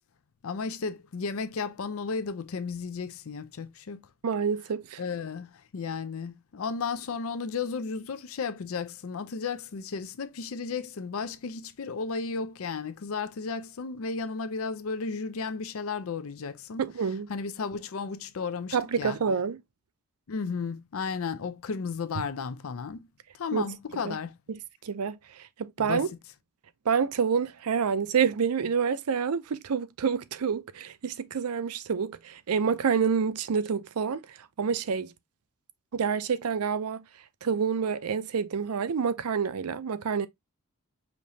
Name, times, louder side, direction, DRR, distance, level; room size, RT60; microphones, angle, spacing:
voice 1, 0.4-4.1 5.0-16.8 17.3-19.2 20.3-23.1 23.3-24.3 25.8-26.1, left 5 dB, 70° left, 0.5 m, -34 dB
voice 2, 4.2-5.0 16.8-17.3 18.7-19.6 23.5-23.7 24.0-24.2 24.5-25.2 25.6-26.1 26.9-35.1 35.9-37.0 37.4-40.3, right 6 dB, 90° right, 0.5 m, -28 dB
5.2 x 3.0 x 2.6 m
head